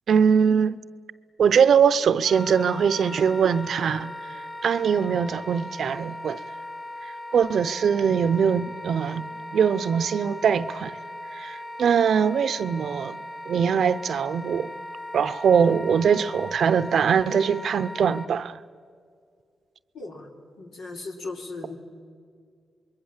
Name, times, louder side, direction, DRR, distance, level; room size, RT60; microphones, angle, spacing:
voice 1, 0.1-0.8 1.4-4.1 4.6-6.4 7.0-11.0 11.3-14.7 15.1-18.6, right 7 dB, 70° right, 0.7 m, -22 dB
Wind instrument woodwind instrument, 2.2-18.3, left 1 dB, 25° left, 1.3 m, -38 dB
voice 2, 19.9-20.3 20.6-21.8, left 3 dB, 85° left, 3.5 m, -37 dB
26.0 x 22.0 x 7.4 m
cardioid pair, 65°, 0 cm